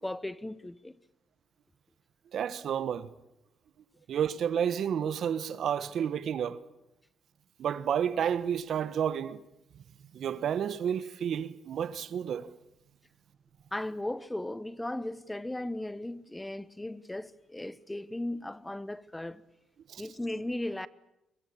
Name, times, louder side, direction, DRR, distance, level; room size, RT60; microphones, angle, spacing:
voice 1, 0.0-0.9 13.7-19.4 20.0-20.9, left 1 dB, 10° left, 1.0 m, -36 dB
voice 2, 2.3-3.1 4.1-6.6 7.6-9.4 10.1-12.5 19.9-20.0, right 8 dB, 65° right, 1.3 m, -30 dB
22.5 x 22.0 x 8.6 m
cardioid pair, 90°, 0 cm